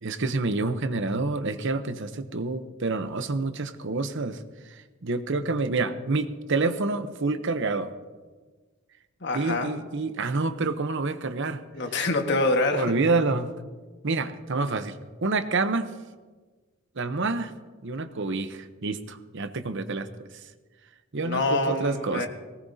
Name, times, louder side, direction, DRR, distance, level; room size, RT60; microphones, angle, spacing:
voice 1, 0.0-7.9 9.3-11.6 12.7-13.5 14.0-15.9 17.0-17.5 17.8-20.3 21.1-22.3, right 3 dB, 60° right, 10 dB, 0.9 m, -28 dB
voice 2, 9.2-9.7 11.7-12.8 21.2-22.3, left 2 dB, 55° left, 4 dB, 1.6 m, -25 dB
20.0 x 18.0 x 2.8 m, 1.4 s
head